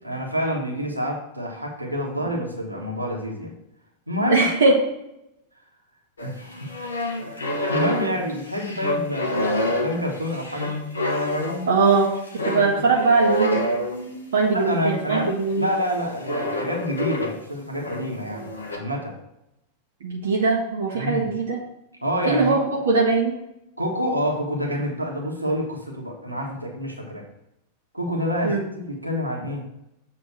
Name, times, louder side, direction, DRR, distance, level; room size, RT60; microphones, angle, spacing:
voice 1, 0.0-3.5 4.1-4.5 6.2-6.8 7.3-10.7 14.5-15.3 15.5-18.5 18.7-19.1 20.9-21.3 22.0-22.6 23.8-27.2 27.9-29.6, equal, 85° right, -1 dB, 1.5 m, -27 dB
voice 2, 4.3-4.8 11.7-12.1 12.4-13.6 14.3-15.7 20.0-21.6 22.3-23.4 28.4-28.6, right 4 dB, 65° right, -2 dB, 1.2 m, -20 dB
sound 1, 6.2-14.3 15.1-15.4 16.2-17.4 17.7-18.8, left 1 dB, 75° left, 1.1 m, -27 dB
7.5 x 3.7 x 6.2 m, 0.83 s
figure-of-eight pair, 90°, 0 cm